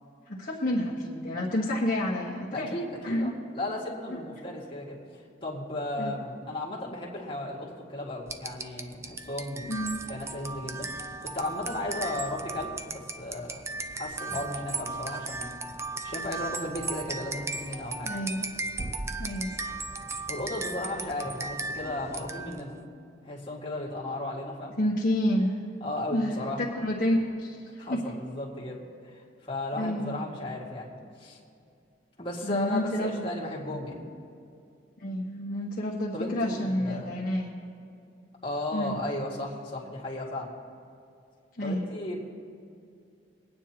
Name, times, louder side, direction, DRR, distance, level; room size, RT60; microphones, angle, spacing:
voice 1, 0.3-2.7 3.0-3.3 4.1-4.2 6.0-6.2 9.7-10.0 18.0-18.5 19.2-19.5 24.8-25.5 26.1-28.0 29.7-30.2 32.4-33.2 35.0-37.5 38.7-39.0 41.6-41.9, left 1 dB, 50° left, -5 dB, 1.4 m, -29 dB
voice 2, 2.5-5.0 5.4-9.7 10.1-10.9 11.2-13.6 13.9-15.5 16.0-18.1 20.3-22.8 23.2-24.8 25.8-26.6 27.8-30.9 31.2-31.4 32.2-34.0 36.1-37.2 38.4-40.5 41.6-42.2, left 1 dB, 30° left, -5 dB, 2.0 m, -35 dB
sound 1, 8.3-22.7, right 3 dB, 15° right, 0.4 m, -36 dB
23.5 x 9.5 x 3.0 m, 2.5 s
head